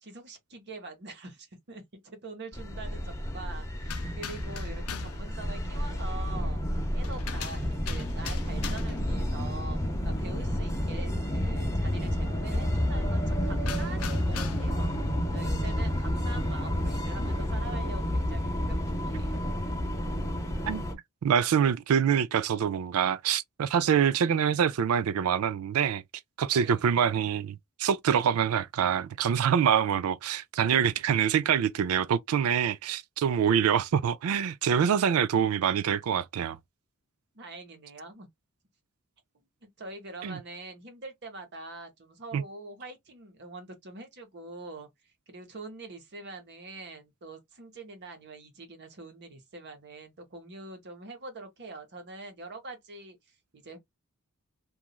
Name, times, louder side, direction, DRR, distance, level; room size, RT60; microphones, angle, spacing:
voice 1, 0.0-6.6 6.9-14.9 15.3-19.4 26.5-27.0 37.3-38.3 39.6-44.9 45.3-53.8, right 3 dB, 50° right, 0.9 m, -44 dB
sound 1, 2.5-20.9, equal, 15° left, 0.6 m, -30 dB
sound 2, 3.9-5.2 7.0-9.1 13.6-14.8, left 7 dB, 75° left, 0.6 m, -40 dB
voice 2, 20.7-26.0 26.4-36.6 40.2-40.4 42.3-42.4, right 8 dB, 75° right, 0.4 m, -25 dB
3.0 x 2.3 x 2.3 m
head